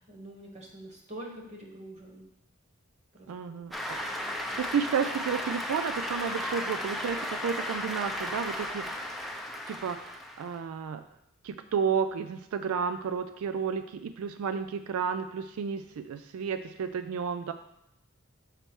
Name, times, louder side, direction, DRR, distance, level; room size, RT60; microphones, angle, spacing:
voice 1, 0.0-2.3 3.1-3.6 4.0-4.6, right 1 dB, 35° right, 0 dB, 1.3 m, -46 dB
voice 2, 3.3-4.0 4.6-9.1 9.7-11.0 11.4-17.5, right 6 dB, 85° right, 9 dB, 0.3 m, -32 dB
Cheering / Applause, 3.7-10.6, equal, ahead, 0.6 m, -35 dB
6.6 x 4.5 x 4.5 m, 0.81 s
head